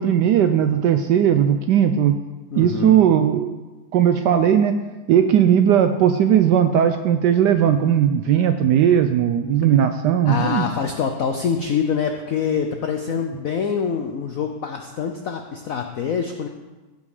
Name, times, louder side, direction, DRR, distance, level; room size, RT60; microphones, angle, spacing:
voice 1, 0.0-2.2 2.5-3.6 3.9-4.7 5.1-10.6, right 9 dB, 75° right, 8 dB, 1.0 m, -17 dB
voice 2, 2.5-3.0 10.3-16.5, left 7 dB, 75° left, 4 dB, 0.7 m, -25 dB
15.5 x 5.5 x 4.9 m, 1.2 s
omnidirectional pair, 2.2 m